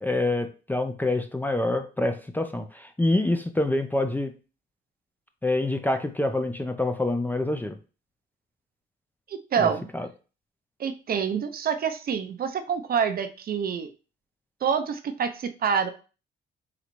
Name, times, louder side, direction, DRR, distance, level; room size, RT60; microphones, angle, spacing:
voice 1, 0.0-4.3 5.4-7.7 9.6-10.1, left 2 dB, 10° left, 7 dB, 0.4 m, -26 dB
voice 2, 9.3-9.9 10.8-13.9 14.6-15.9, right 7 dB, 50° right, 8 dB, 0.5 m, -27 dB
3.9 x 3.1 x 3.0 m, 0.34 s
cardioid pair, 90°, 20 cm